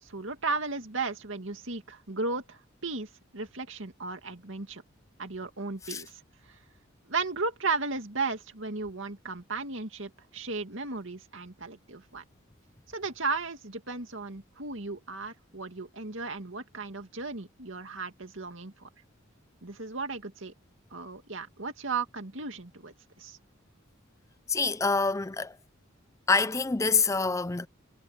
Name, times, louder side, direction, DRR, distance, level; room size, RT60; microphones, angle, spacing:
voice 1, 0.0-4.8 5.2-6.6 7.1-12.2 12.9-18.9 19.6-20.5 20.9-23.4, right 4 dB, 70° right, 2.3 m, -35 dB
voice 2, 24.5-25.6 26.3-27.7, left 4 dB, 15° left, 0.4 m, -26 dB
head